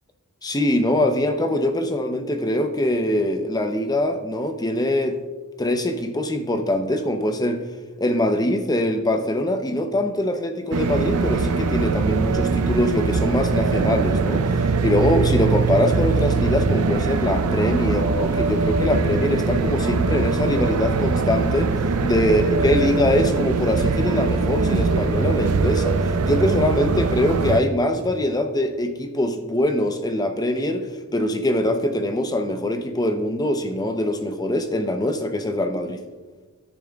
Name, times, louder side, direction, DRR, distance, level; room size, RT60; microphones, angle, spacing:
voice 1, 0.4-5.2 5.6-7.6 8.0-21.7 22.0-36.0, left 1 dB, 20° left, 6 dB, 0.7 m, -23 dB
sound 1, 10.7-27.6, right 4 dB, 85° right, 0.6 m, -22 dB
12.5 x 10.5 x 2.4 m, 1.3 s
head